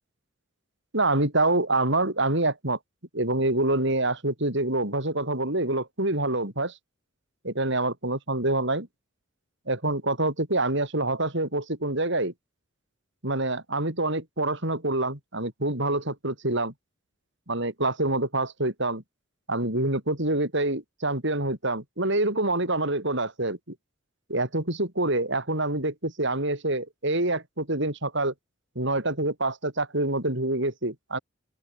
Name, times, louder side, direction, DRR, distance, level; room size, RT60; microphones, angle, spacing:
voice 1, 0.9-2.8 3.1-6.7 7.4-8.9 9.7-12.3 13.2-16.7 17.5-19.0 19.5-23.7 24.3-28.3 28.7-31.2, right 2 dB, 60° right, 6.4 m, -26 dB
open air
head